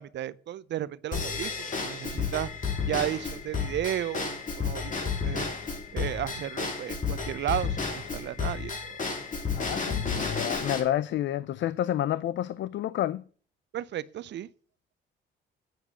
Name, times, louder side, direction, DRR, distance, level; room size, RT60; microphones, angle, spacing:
voice 1, 0.0-2.5 2.9-5.5 5.9-9.0 13.7-14.5, right 12 dB, 65° right, 0.6 m, -34 dB
Drum kit / Drum / Bell, 1.1-10.8, left 5 dB, 40° left, 3.1 m, -32 dB
voice 2, 9.5-13.2, left 12 dB, 65° left, 0.5 m, -29 dB
9.3 x 6.1 x 8.1 m
cardioid pair, 90°, 20 cm